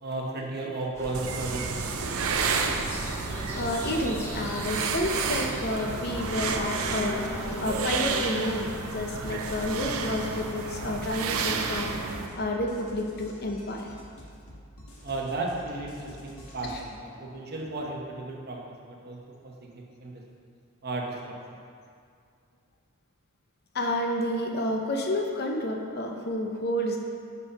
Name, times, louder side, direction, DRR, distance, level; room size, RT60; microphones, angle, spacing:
voice 1, 0.0-2.2 15.0-18.7 19.0-19.2 19.4-20.2 20.8-21.2, right 2 dB, 45° right, -1 dB, 1.0 m, -34 dB
sound 1, 0.9-8.2, left 1 dB, 10° left, 0.8 m, -38 dB
sound 2, 1.1-12.3, right 5 dB, 75° right, 0.6 m, -31 dB
sound 3, 1.2-16.9, equal, 75° left, 1.4 m, -48 dB
voice 2, 3.5-13.9 16.6-16.8 23.7-27.0, left 1 dB, 45° left, 2 dB, 0.7 m, -30 dB
6.1 x 5.4 x 5.5 m, 2.3 s
head